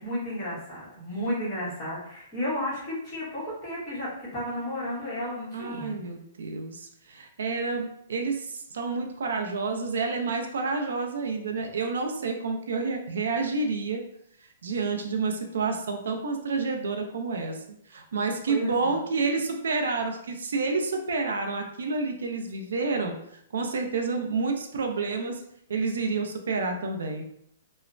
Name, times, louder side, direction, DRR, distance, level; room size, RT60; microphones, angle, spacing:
voice 1, 0.0-6.0 18.5-18.9, left 1 dB, 20° left, -9 dB, 1.2 m, -33 dB
voice 2, 5.5-14.0 14.6-17.6 17.9-23.2 23.5-25.4 25.7-27.2, right 4 dB, 85° right, 4 dB, 0.4 m, -29 dB
3.0 x 2.0 x 2.5 m, 0.72 s
hypercardioid pair, 170°, 0 cm